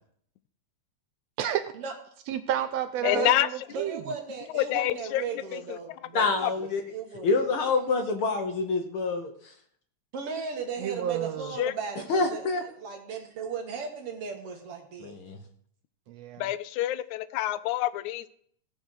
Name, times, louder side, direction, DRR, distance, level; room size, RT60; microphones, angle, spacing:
voice 1, 2.3-4.0 10.8-11.5 16.1-16.4, right 11 dB, 80° right, 11 dB, 1.6 m, -30 dB
voice 2, 3.0-3.5 4.5-5.2 5.5-5.8 6.4-6.7 11.6-11.7 16.4-18.3, left 14 dB, 85° left, 14 dB, 2.0 m, -27 dB
voice 3, 3.7-6.6 6.9-7.3 10.1-12.5 12.8-15.2, right 5 dB, 55° right, 4 dB, 2.3 m, -36 dB
voice 4, 6.1-6.8 7.2-9.3 12.1-12.6 15.0-15.4, left 3 dB, 60° left, 5 dB, 1.6 m, -26 dB
16.0 x 5.5 x 6.3 m, 0.62 s
omnidirectional pair, 3.3 m